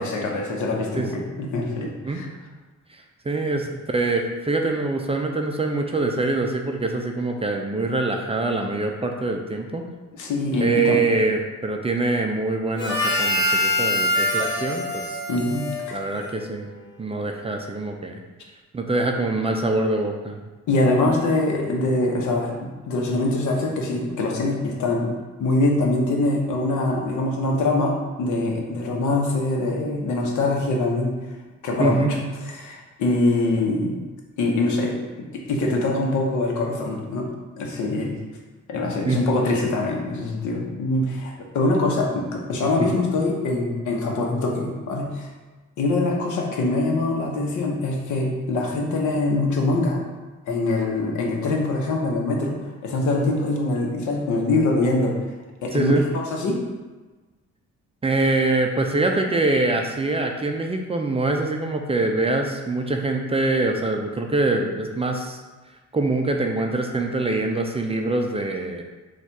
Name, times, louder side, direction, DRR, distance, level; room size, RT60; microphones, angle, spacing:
voice 1, 0.0-2.3 10.2-11.0 15.3-16.0 20.7-25.1 25.4-31.1 31.6-32.2 32.5-34.0 34.4-34.9 35.3-37.3 37.6-38.1 38.7-45.3 45.8-50.0 50.5-55.2 55.6-56.6, left 2 dB, 75° left, 0 dB, 0.9 m, -23 dB
voice 2, 2.9-9.9 10.6-15.4 15.9-16.7 17.0-18.2 18.7-20.4 31.8-32.1 39.0-39.2 42.8-42.9 55.7-56.0 58.0-65.4 65.9-68.8, right 2 dB, 20° right, 3 dB, 0.4 m, -24 dB
Harmonica, 12.8-16.6, left 1 dB, 35° left, 1.1 m, -24 dB
4.2 x 2.4 x 4.5 m, 1.3 s
cardioid pair, 90°, 30 cm